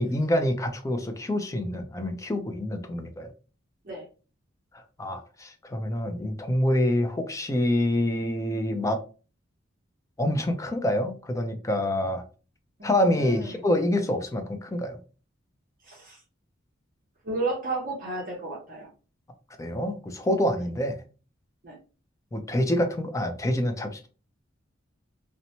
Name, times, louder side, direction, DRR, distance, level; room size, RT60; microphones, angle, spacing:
voice 1, 0.0-3.3 5.0-9.0 10.2-12.2 12.8-15.0 19.6-21.0 22.3-24.1, left 1 dB, 15° left, 6 dB, 0.4 m, -26 dB
voice 2, 12.8-13.7 15.8-16.2 17.2-18.9 21.6-21.8, right 2 dB, 45° right, -3 dB, 0.7 m, -33 dB
2.8 x 2.1 x 2.7 m, 0.35 s
head